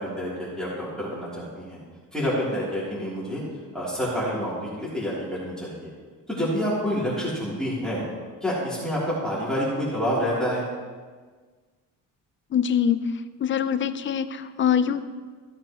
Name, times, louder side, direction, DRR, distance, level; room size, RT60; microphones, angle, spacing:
voice 1, 0.0-1.8 2.1-3.4 3.7-5.9 6.3-8.0 8.4-10.6, equal, ahead, -10 dB, 3.3 m, -28 dB
voice 2, 12.5-13.0 13.4-15.0, left 8 dB, 35° left, 12 dB, 0.6 m, -23 dB
15.0 x 8.9 x 3.1 m, 1.5 s
cardioid pair, 120°, 34 cm